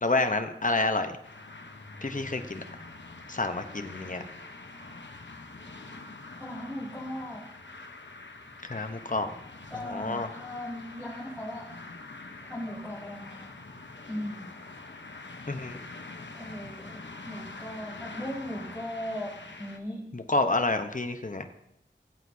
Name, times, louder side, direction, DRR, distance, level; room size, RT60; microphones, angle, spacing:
voice 1, 0.0-1.1 2.0-2.6 3.3-4.2 8.7-9.3 9.9-10.3 15.5-15.8 20.1-21.4, left 2 dB, 40° left, 7 dB, 0.9 m, -28 dB
sound 1, 1.2-19.8, left 3 dB, 70° left, 1.0 m, -45 dB
voice 2, 6.3-7.4 9.7-11.7 12.4-13.5 14.1-14.5 16.3-20.0, left 1 dB, ahead, -9 dB, 4.5 m, -38 dB
19.0 x 8.2 x 2.8 m, 0.80 s
wide cardioid pair, 45°, 20 cm